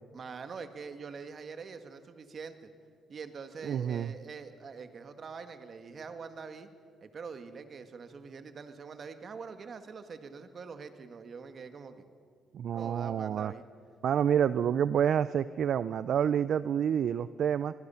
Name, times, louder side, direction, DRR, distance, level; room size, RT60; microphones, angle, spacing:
voice 1, 0.1-2.7 3.1-6.7 7.0-12.0 12.7-13.6, right 5 dB, 50° right, 8 dB, 1.8 m, -44 dB
voice 2, 3.6-4.1 12.5-13.5 14.0-17.7, right 8 dB, 65° right, 15 dB, 0.4 m, -28 dB
25.0 x 21.0 x 5.7 m, 2.2 s
cardioid pair, 90°, 0 cm